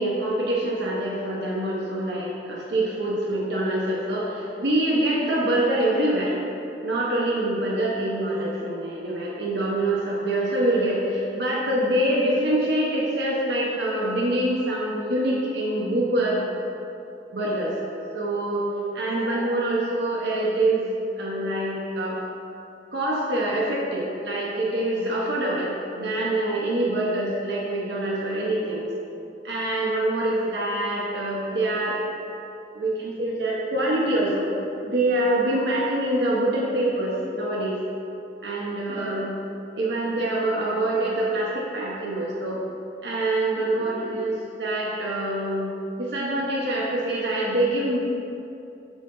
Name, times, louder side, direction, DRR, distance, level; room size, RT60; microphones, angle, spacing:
voice 1, 0.0-6.4 6.8-16.6 17.3-17.8 18.1-20.9 21.2-22.2 22.9-28.9 29.4-32.0 32.7-34.5 34.8-37.8 38.4-39.4 39.8-42.6 43.0-48.0, right 1 dB, 75° right, -5 dB, 1.0 m, -25 dB
11.0 x 3.9 x 3.9 m, 2.7 s
head